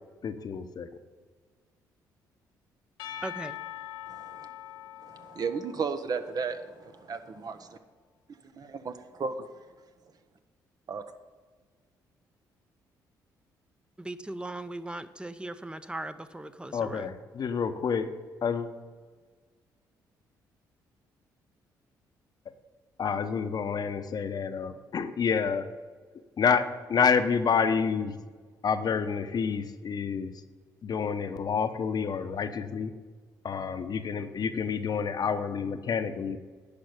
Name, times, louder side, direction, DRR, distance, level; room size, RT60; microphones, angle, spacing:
voice 1, 0.2-0.9 16.7-18.1 18.4-18.7 23.0-25.6 26.4-28.2 28.6-30.4 30.8-32.9 33.4-36.4, left 6 dB, 55° left, 0.8 m, -28 dB
Percussion / Church bell, 3.0-7.2, left 12 dB, 85° left, 0.8 m, -43 dB
voice 2, 3.2-3.6 14.0-17.1, right 2 dB, 10° right, 0.7 m, -38 dB
voice 3, 4.1-4.5 5.0-7.8 8.4-9.5 10.9-11.0, right 5 dB, 50° right, 0.9 m, -35 dB
10.5 x 5.3 x 8.1 m
supercardioid pair, 60°, 8 cm